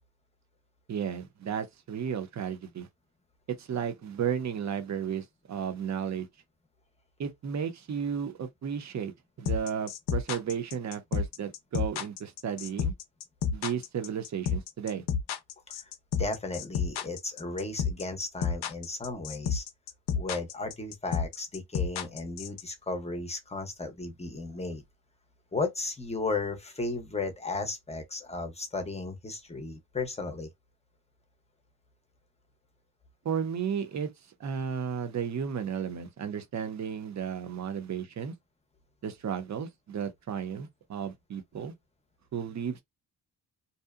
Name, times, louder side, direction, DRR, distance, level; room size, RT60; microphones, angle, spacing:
voice 1, 0.9-2.9 3.5-6.3 7.2-9.1 9.4-12.9 13.5-15.0 33.2-34.1 34.4-38.3 39.0-41.7 42.3-42.8, right 7 dB, 45° right, 0.6 m, -33 dB
sound 1, 9.5-22.6, left 7 dB, 70° left, 0.5 m, -30 dB
voice 2, 16.2-19.6 20.1-24.8 25.5-30.5, left 3 dB, 15° left, 0.6 m, -35 dB
2.7 x 2.1 x 2.3 m
cardioid pair, 105°, 41 cm